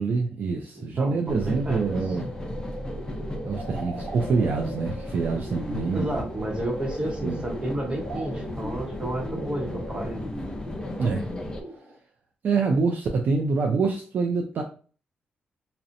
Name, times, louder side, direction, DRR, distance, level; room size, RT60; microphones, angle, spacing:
voice 1, 0.0-2.3 3.4-6.2 7.2-7.4 11.0-11.2 12.4-14.6, right 4 dB, 60° right, 2 dB, 0.3 m, -26 dB
voice 2, 0.7-2.1 5.9-10.3, right 1 dB, 30° right, 0 dB, 0.8 m, -32 dB
sound 1, 1.3-11.6, left 1 dB, 20° left, 0.4 m, -36 dB
sound 2, 2.0-12.0, right 1 dB, 80° right, 1.0 m, -38 dB
2.7 x 2.0 x 2.5 m, 0.39 s
cardioid pair, 110°, 4 cm